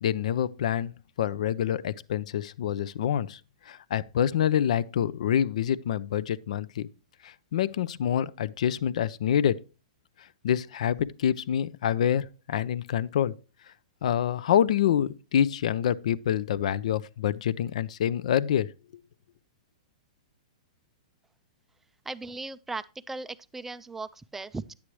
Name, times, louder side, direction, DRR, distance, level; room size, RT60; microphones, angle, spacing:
voice 1, 0.0-3.4 3.7-6.9 7.2-9.6 10.4-13.3 14.0-18.7, left 9 dB, 70° left, 0.5 m, -26 dB
voice 2, 22.1-24.7, right 3 dB, 5° right, 0.3 m, -37 dB
10.0 x 8.3 x 3.1 m
hypercardioid pair, 140°, 4 cm